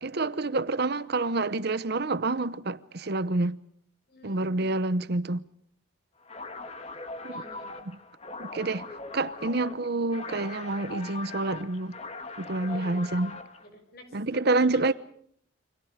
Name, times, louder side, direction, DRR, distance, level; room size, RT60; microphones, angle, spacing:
voice 1, 0.0-3.6 4.2-5.4 7.2-7.4 7.9-8.0 8.4-8.9 9.1-12.0 12.4-13.4 14.1-14.9, right 2 dB, 55° right, 0.9 m, -28 dB
voice 2, 4.1-4.9 7.3-7.8 10.3-10.4 12.7-13.3 13.6-14.1 14.5-14.9, left 1 dB, 55° left, 6.3 m, -49 dB
sound 1, 6.2-13.7, left 3 dB, 35° left, 2.0 m, -41 dB
29.5 x 25.5 x 5.0 m
head